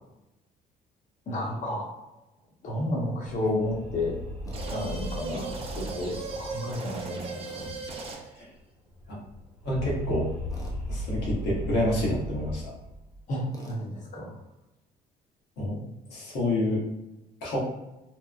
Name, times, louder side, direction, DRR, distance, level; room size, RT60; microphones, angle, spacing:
voice 1, 1.3-1.9 2.6-4.2 4.7-7.7 13.3-14.3, left 1 dB, 50° left, -2 dB, 0.9 m, -31 dB
sound 1, 3.0-8.3 8.5-8.6 8.9-13.2, equal, 5° left, 1.1 m, -37 dB
Tools, 4.4-4.7 7.4-7.8 10.5-10.8 13.5-13.8, equal, 20° left, 0.6 m, -46 dB
sound 2, 4.5-8.4, right 4 dB, 35° right, 0.5 m, -38 dB
voice 2, 8.1-8.5 9.6-10.3 10.9-12.7 15.6-15.8 16.1-16.8 17.4-17.6, left 1 dB, 80° left, -5 dB, 1.1 m, -28 dB
2.8 x 2.0 x 2.4 m, 0.95 s
cardioid pair, 110°, 17 cm